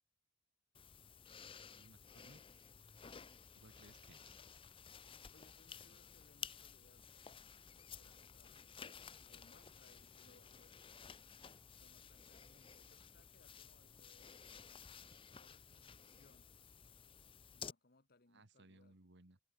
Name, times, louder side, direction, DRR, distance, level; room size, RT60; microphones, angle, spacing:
sound 1, 0.7-17.7, left 7 dB, 25° left, 0.6 m, -55 dB
voice 1, 1.7-2.7 3.5-4.3 18.3-19.4, right 2 dB, 60° right, 2.1 m, -64 dB
voice 2, 5.3-7.1 7.8-10.8 11.8-14.4 15.3-16.5 17.5-19.0, left 2 dB, 50° left, 1.7 m, -70 dB
head